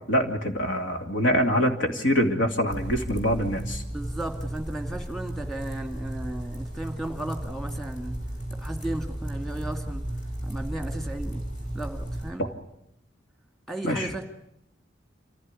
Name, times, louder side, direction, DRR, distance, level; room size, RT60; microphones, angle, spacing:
voice 1, 0.1-3.8 12.4-12.5 13.8-14.1, equal, 80° left, 5 dB, 2.7 m, -24 dB
sound 1, 2.7-12.3, right 1 dB, 45° left, 5.1 m, -34 dB
voice 2, 3.9-8.1 8.6-10.0 10.4-11.4 11.7-12.4 13.7-14.2, right 1 dB, ahead, 5 dB, 2.3 m, -35 dB
27.0 x 15.5 x 9.8 m, 0.80 s
head